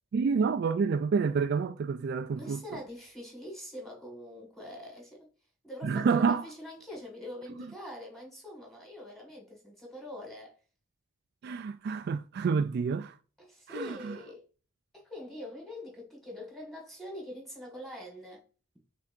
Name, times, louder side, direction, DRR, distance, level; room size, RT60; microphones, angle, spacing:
voice 1, 0.1-2.6 5.8-6.4 11.4-13.1 13.7-14.1, right 5 dB, 55° right, 0.3 m, -28 dB
voice 2, 2.4-5.2 5.6-10.5 13.4-14.4 14.9-18.4, left 1 dB, ahead, 1.9 m, -44 dB
5.7 x 3.4 x 2.6 m
head